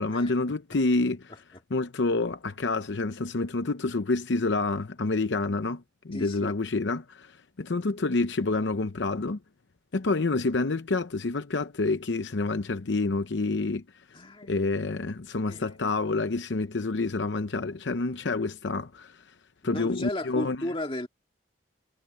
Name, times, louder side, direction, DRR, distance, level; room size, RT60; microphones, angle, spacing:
voice 1, 0.0-1.3 1.7-9.4 9.9-14.0 14.5-19.3 19.6-20.7, left 3 dB, 70° left, 0.7 m, -28 dB
voice 2, 6.1-6.5 14.1-14.7 15.4-15.9 19.6-21.1, left 1 dB, 30° left, 2.2 m, -35 dB
head